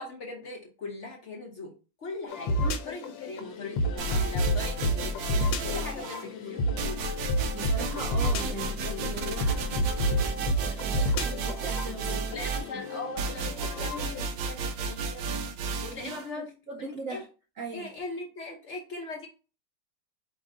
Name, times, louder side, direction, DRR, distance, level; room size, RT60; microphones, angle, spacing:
voice 1, 0.0-7.1 12.1-15.4 15.8-17.2 17.7-19.3, left 2 dB, 50° left, 0.9 m, -40 dB
sound 1, 2.3-14.3, equal, 90° left, 1.4 m, -30 dB
sound 2, 4.0-6.3 6.8-16.3, right 3 dB, 85° right, 1.3 m, -33 dB
voice 2, 7.5-9.6 10.0-12.2 12.9-13.0 15.7-17.2 17.6-17.9, right 3 dB, 65° right, 0.8 m, -40 dB
5.2 x 2.5 x 3.6 m
omnidirectional pair, 2.0 m